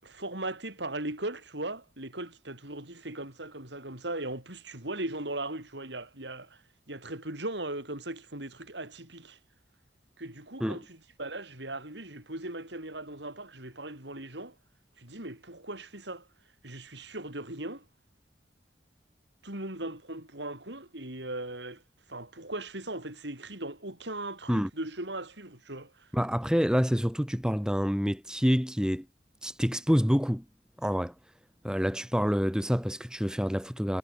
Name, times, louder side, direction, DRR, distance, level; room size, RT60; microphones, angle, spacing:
voice 1, 0.0-6.6 6.9-9.4 10.2-14.5 15.0-16.3 16.6-17.8 19.4-21.8 22.1-26.1, right 2 dB, 75° right, 7.9 m, -38 dB
voice 2, 26.1-29.1 29.4-30.4 30.8-31.1 31.6-34.0, equal, 5° right, 4.0 m, -27 dB
head